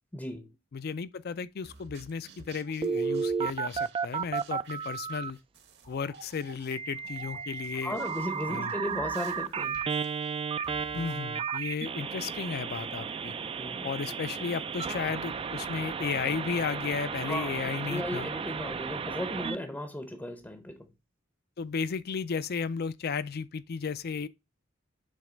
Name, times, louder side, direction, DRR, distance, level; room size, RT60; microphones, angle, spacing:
voice 1, 0.1-0.5 7.8-9.8 13.6-13.9 17.3-20.9, left 1 dB, 10° left, 0.6 m, -36 dB
voice 2, 0.7-5.4 5.9-8.0 8.5-8.7 10.9-13.3 13.8-18.3 21.6-24.3, left 5 dB, 50° left, 0.4 m, -34 dB
sound 1, 1.6-11.3, right 3 dB, 55° right, 1.2 m, -53 dB
Telephone, 2.8-5.3 6.7-19.6, right 6 dB, 25° right, 0.3 m, -33 dB
7.5 x 3.2 x 5.0 m
head